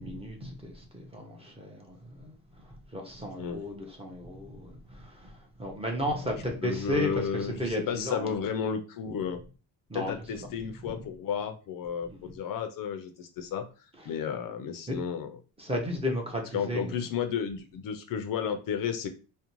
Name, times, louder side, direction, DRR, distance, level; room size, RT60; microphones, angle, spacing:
voice 1, 0.0-8.3 9.9-10.1 10.4-10.5 12.1-12.3 14.9-15.0 15.6-17.0, equal, 15° right, 0.6 m, -34 dB
voice 2, 6.6-9.4 9.9-13.7 14.1-15.3 16.5-19.1, left 7 dB, 55° left, 0.4 m, -32 dB
2.5 x 2.1 x 2.9 m
cardioid pair, 110°, 42 cm